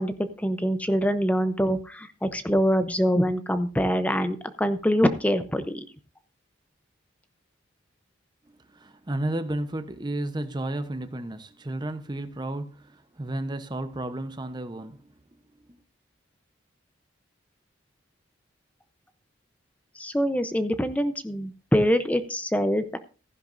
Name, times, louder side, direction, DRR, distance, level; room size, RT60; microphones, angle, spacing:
voice 1, 0.0-5.8 20.0-23.0, equal, 5° left, 0.7 m, -24 dB
voice 2, 8.7-15.1 15.7-15.8, right 1 dB, 20° right, 0.8 m, -32 dB
15.0 x 10.5 x 2.6 m
head